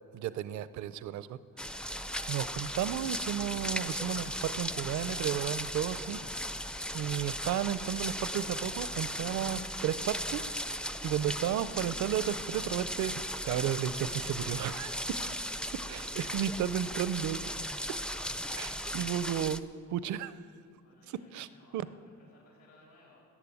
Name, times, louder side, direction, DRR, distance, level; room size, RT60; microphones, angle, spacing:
voice 1, 0.1-1.4 1.7-6.5 6.9-10.4 11.0-15.2 15.9-17.5 18.6-20.4 21.3-21.5 21.7-21.8, right 10 dB, 70° right, 16 dB, 0.6 m, -33 dB
sound 1, 1.6-19.6, equal, 5° left, 0.4 m, -37 dB
sound 2, 1.7-9.5, left 6 dB, 90° left, 1.2 m, -58 dB
voice 2, 15.4-15.9 16.7-17.8 20.7-23.2, left 2 dB, 65° left, -3 dB, 4.4 m, -62 dB
13.0 x 8.3 x 8.4 m, 2.3 s
cardioid pair, 90°, 30 cm